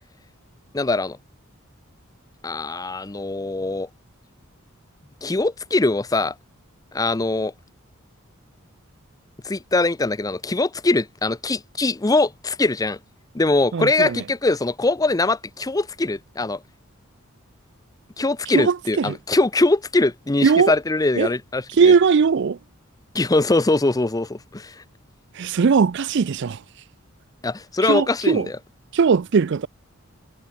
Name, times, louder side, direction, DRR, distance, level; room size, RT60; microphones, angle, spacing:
voice 1, 0.7-1.2 2.4-3.9 5.2-6.3 6.9-7.5 9.4-13.0 13.3-16.6 18.2-21.9 23.1-24.7 27.4-28.4, left 2 dB, 15° left, 0.5 m, -22 dB
voice 2, 13.7-14.2 18.5-19.2 20.4-20.7 21.2-21.3 21.7-22.6 25.3-26.6 27.8-28.5 28.9-29.7, right 5 dB, 55° right, 0.4 m, -19 dB
head